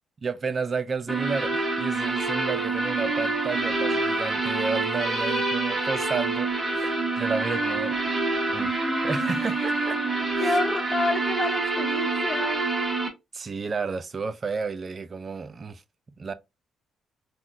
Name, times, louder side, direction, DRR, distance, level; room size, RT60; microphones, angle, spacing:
voice 1, 0.2-8.0 8.5-10.0 10.4-10.6 13.3-15.8 16.2-16.3, right 4 dB, 40° right, 0.4 m, -32 dB
sound 1, 1.1-13.1, right 3 dB, 15° right, 1.0 m, -26 dB
voice 2, 10.4-12.6, left 3 dB, 30° left, 0.5 m, -28 dB
3.9 x 2.1 x 2.4 m
cardioid pair, 90°, 0 cm